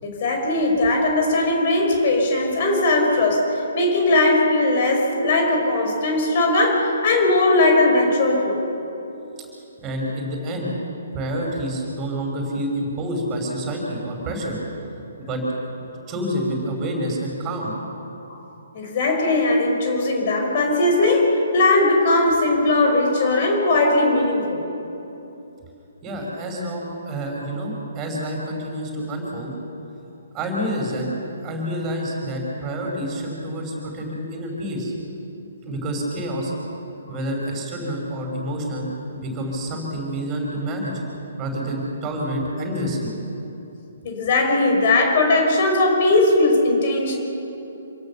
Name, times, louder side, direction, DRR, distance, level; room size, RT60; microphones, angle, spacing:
voice 1, 0.0-8.6 18.3-18.4 18.7-24.6 44.0-47.2, left 2 dB, 40° left, 2 dB, 5.4 m, -19 dB
voice 2, 9.8-10.7 11.1-14.6 15.2-15.4 16.1-17.7 26.0-29.5 30.3-31.1 31.4-34.9 35.6-36.5 37.1-41.0 41.4-43.1, equal, 20° right, 0 dB, 5.3 m, -28 dB
27.0 x 17.5 x 7.0 m, 2.9 s
figure-of-eight pair, 130°, 0 cm